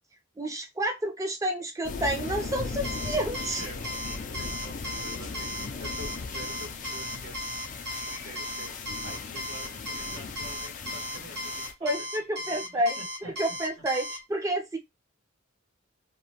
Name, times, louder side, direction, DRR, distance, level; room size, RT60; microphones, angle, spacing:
voice 1, 0.4-3.6 11.8-13.0 13.2-14.8, right 1 dB, 15° right, 0.6 m, -29 dB
sound 1, 1.8-11.7, left 4 dB, 40° left, 0.4 m, -38 dB
Alarm, 2.8-14.2, left 1 dB, 55° right, 0.9 m, -36 dB
voice 2, 3.3-7.5 8.0-12.1 12.4-13.6, right 1 dB, 80° right, 1.6 m, -47 dB
3.0 x 2.2 x 2.8 m
head